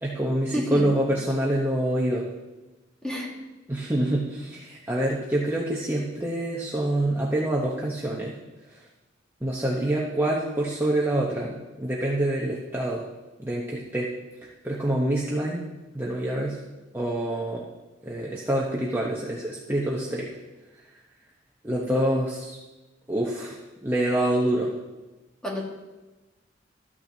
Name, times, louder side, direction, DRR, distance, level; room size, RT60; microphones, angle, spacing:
voice 1, 0.0-2.2 3.7-8.3 8.7-8.8 9.4-13.0 13.4-14.1 14.6-15.6 15.9-16.6 16.9-17.7 18.0-20.3 21.6-22.6 23.1-24.7, right 1 dB, 10° right, -4 dB, 0.9 m, -26 dB
voice 2, 0.5-0.8 3.0-3.3 25.4-25.6, left 1 dB, 5° left, -3 dB, 1.6 m, -29 dB
13.5 x 8.7 x 2.8 m, 1.1 s
head